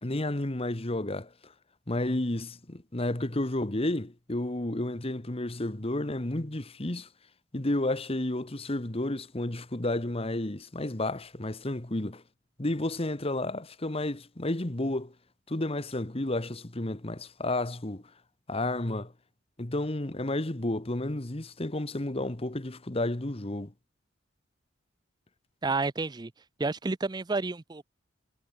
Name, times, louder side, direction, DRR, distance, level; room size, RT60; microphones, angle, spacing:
voice 1, 0.0-1.5 1.9-7.1 7.5-12.2 12.6-15.1 15.5-18.0 18.5-19.1 19.6-23.7, left 1 dB, 30° left, 1.3 m, -31 dB
voice 2, 25.6-26.3 26.6-27.8, right 3 dB, 20° right, 0.5 m, -30 dB
head